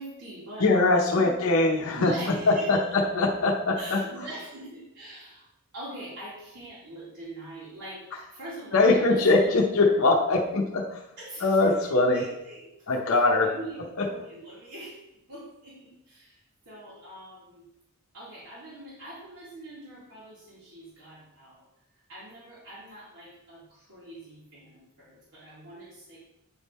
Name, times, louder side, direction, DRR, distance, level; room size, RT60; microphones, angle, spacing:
voice 1, 0.0-0.7 1.1-1.3 1.9-3.0 3.8-5.5 5.7-8.0 8.3-9.5 11.2-11.9 12.1-12.7 13.1-13.8 14.1-15.0 15.3-17.6 18.1-21.6 22.1-26.2, right 1 dB, 85° right, -9 dB, 2.1 m, -43 dB
voice 2, 0.6-4.0 8.7-11.0 11.4-12.2 12.9-13.5 14.0-14.1, left 3 dB, 65° left, 0 dB, 0.7 m, -22 dB
8.6 x 3.6 x 4.1 m, 0.91 s
head